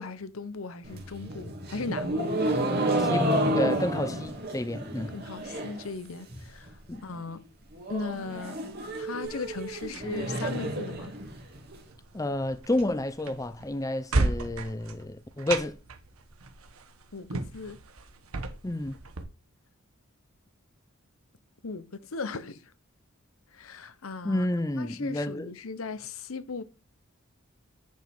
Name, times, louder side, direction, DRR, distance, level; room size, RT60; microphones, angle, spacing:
voice 1, 0.0-2.5 5.1-6.8 7.0-7.4 7.9-8.6 8.9-11.1 17.1-17.8 21.6-22.6 23.5-24.5 24.8-26.6, left 4 dB, 75° left, 0.9 m, -37 dB
sound 1, 0.8-5.9 6.2-6.7 7.0-7.1 7.3-7.4 7.7-11.7, right 1 dB, 50° right, 2.3 m, -30 dB
voice 2, 3.0-5.1 6.9-7.0 12.1-15.8 18.6-19.0 24.2-25.5, left 1 dB, 15° left, 0.5 m, -30 dB
sound 2, 9.2-19.2, right 3 dB, 80° right, 1.2 m, -35 dB
10.0 x 5.3 x 3.5 m
head